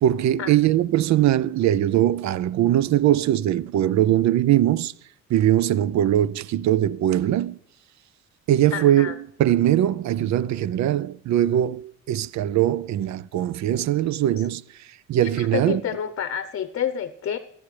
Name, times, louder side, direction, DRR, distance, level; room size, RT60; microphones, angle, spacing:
voice 1, 0.0-4.9 5.3-7.6 8.5-14.6 15.1-15.8, right 12 dB, 65° right, 0.5 m, -21 dB
voice 2, 8.7-9.1 15.2-17.4, left 9 dB, 50° left, 0.8 m, -29 dB
19.5 x 8.7 x 3.3 m
cardioid pair, 90°, 30 cm